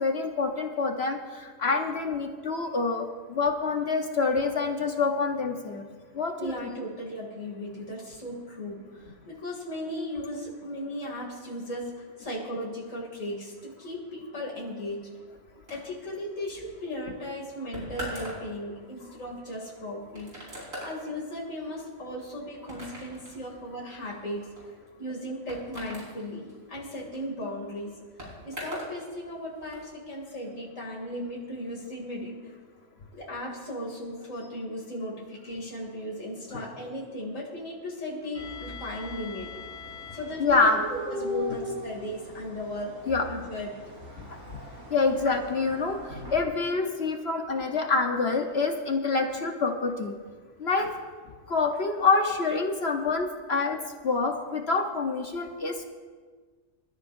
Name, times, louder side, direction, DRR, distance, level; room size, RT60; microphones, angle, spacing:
voice 1, 0.0-5.8 6.1-6.5 36.5-36.6 40.4-40.8 43.1-43.3 44.2-44.4 44.9-50.1 50.6-50.9 51.5-53.8 54.0-55.8, left 4 dB, 55° left, 4 dB, 1.3 m, -26 dB
voice 2, 6.4-15.1 15.7-24.4 25.0-27.9 28.4-32.5 33.1-39.5 40.1-42.9 43.3-43.8, equal, 75° left, -3 dB, 3.1 m, -36 dB
sound 1, 15.7-29.0 29.2-29.9, equal, 85° right, 5.1 m, -43 dB
sound 2, 38.3-46.4, left 2 dB, 70° right, 3.9 m, -39 dB
27.5 x 14.0 x 2.7 m, 1.5 s
omnidirectional pair, 1.3 m